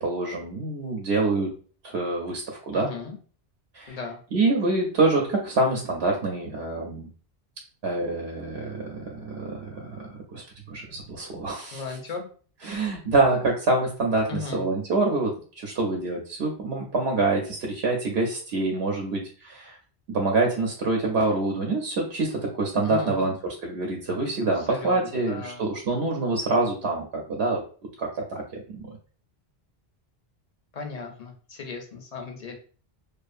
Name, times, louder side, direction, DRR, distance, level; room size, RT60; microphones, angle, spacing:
voice 1, 0.0-1.5 1.8-2.9 3.7-4.0 4.3-7.1 7.8-11.8 12.6-19.8 20.1-23.4 23.6-27.6 28.0-28.9, right 2 dB, 85° right, 0 dB, 0.8 m, -26 dB
voice 2, 2.7-3.2 3.9-4.2 11.7-12.3 14.3-14.7 22.8-23.2 24.5-25.7 30.7-32.5, left 4 dB, 45° left, 2 dB, 0.6 m, -36 dB
2.5 x 2.5 x 2.4 m, 0.41 s
omnidirectional pair, 1.0 m